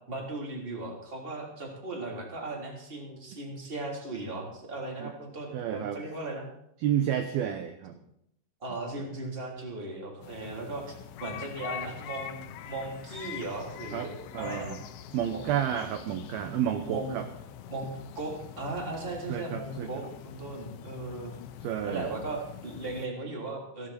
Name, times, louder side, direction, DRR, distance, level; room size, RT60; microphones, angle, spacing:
voice 1, 0.1-6.5 8.6-10.8 11.2-14.8 15.3-15.4 16.8-17.2 17.7-21.3 21.8-23.9, right 2 dB, 15° right, 0 dB, 2.8 m, -37 dB
voice 2, 5.5-6.0 6.8-8.0 13.9-14.1 14.3-14.8 15.1-17.3 19.3-20.1 21.6-22.1, right 10 dB, 75° right, 7 dB, 2.3 m, -30 dB
sound 1, 10.2-23.1, left 10 dB, 80° left, 3.0 m, -44 dB
15.5 x 15.0 x 4.3 m, 0.74 s
omnidirectional pair, 5.4 m